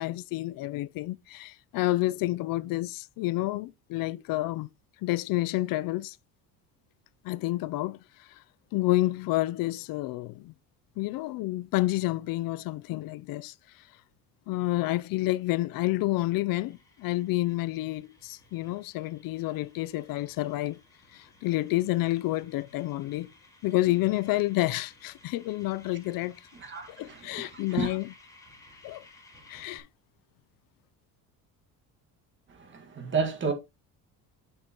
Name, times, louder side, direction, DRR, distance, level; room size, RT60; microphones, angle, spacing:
voice 1, 0.0-4.7 5.0-6.2 7.2-8.4 8.7-10.5 11.0-13.5 14.5-20.8 21.1-23.3 23.6-26.4 26.9-28.1 28.8-29.0 29.5-29.9, left 17 dB, 65° left, 0.5 m, -29 dB
sound 1, 16.7-29.8, left 2 dB, 10° left, 3.2 m, -57 dB
voice 2, 26.6-28.0 32.5-33.5, right 5 dB, 30° right, 1.8 m, -32 dB
9.8 x 6.7 x 2.9 m
cardioid pair, 155°, 37 cm